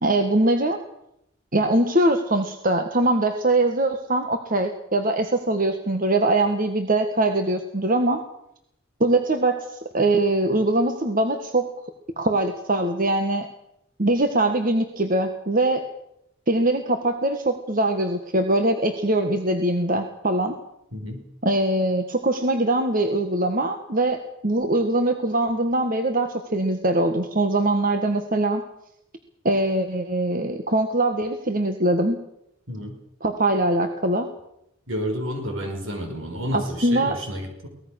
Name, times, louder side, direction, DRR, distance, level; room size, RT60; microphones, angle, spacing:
voice 1, 0.0-0.8 1.5-8.2 9.0-11.7 12.2-13.5 14.0-15.8 16.5-20.5 21.4-28.6 29.4-32.2 33.2-34.3 36.5-37.2, right 2 dB, 40° right, 6 dB, 1.7 m, -22 dB
voice 2, 20.9-21.2 32.7-33.0 34.9-37.7, equal, 75° right, 4 dB, 5.2 m, -30 dB
23.0 x 19.5 x 6.6 m, 0.78 s
head